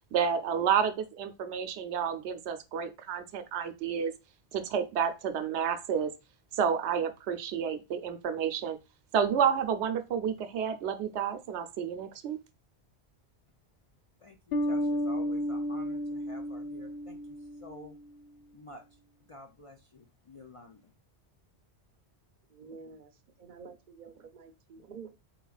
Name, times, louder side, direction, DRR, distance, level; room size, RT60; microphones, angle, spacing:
voice 1, 0.1-4.1 4.5-6.1 6.5-8.8 9.1-12.4, right 7 dB, 90° right, 0.9 m, -30 dB
voice 2, 14.2-18.0 18.5-18.8 19.3-20.9, left 2 dB, 50° left, 0.4 m, -50 dB
Bass guitar, 14.5-18.0, equal, 70° left, 0.8 m, -32 dB
voice 3, 22.5-23.1 23.4-25.1, right 5 dB, 55° right, 0.7 m, -48 dB
4.3 x 3.9 x 2.3 m
omnidirectional pair, 1.1 m